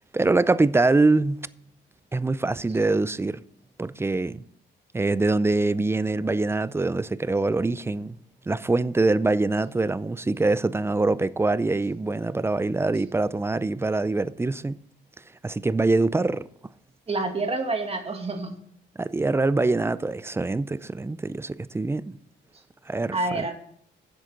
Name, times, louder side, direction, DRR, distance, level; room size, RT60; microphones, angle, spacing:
voice 1, 0.1-1.4 2.1-3.4 3.8-4.4 4.9-8.2 8.5-14.8 15.4-16.4 19.0-22.0 22.9-23.5, right 3 dB, 10° right, 0.4 m, -24 dB
voice 2, 17.1-18.6 23.1-23.5, right 3 dB, 30° right, 2.1 m, -28 dB
11.0 x 7.5 x 3.9 m
cardioid pair, 90°, 20 cm